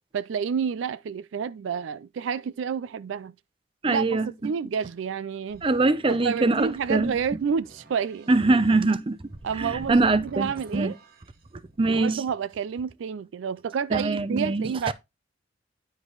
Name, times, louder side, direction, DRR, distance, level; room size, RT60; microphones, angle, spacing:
voice 1, 0.1-3.3 3.9-4.2 4.4-5.6 6.1-8.3 9.4-10.0 10.2-11.0 11.9-14.9, right 6 dB, 75° right, 0.4 m, -29 dB
voice 2, 3.8-4.5 5.6-7.2 8.3-9.2 9.6-10.9 11.8-12.2 13.9-14.9, right 3 dB, 25° right, 0.6 m, -23 dB
sound 1, 5.5-12.2, right 1 dB, 50° right, 1.2 m, -47 dB
9.9 x 5.1 x 3.9 m
head